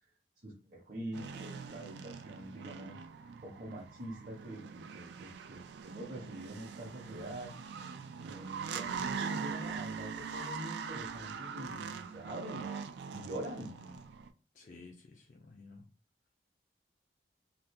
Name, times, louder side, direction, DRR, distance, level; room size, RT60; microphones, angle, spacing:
voice 1, 0.4-3.0 3.4-7.5 8.2-12.7 13.1-13.7, right 1 dB, 45° right, 0.7 m, -44 dB
sound 1, 1.1-14.3, right 6 dB, 75° right, 0.3 m, -42 dB
voice 2, 14.5-15.9, left 3 dB, 45° left, 0.4 m, -53 dB
2.8 x 2.4 x 3.5 m
head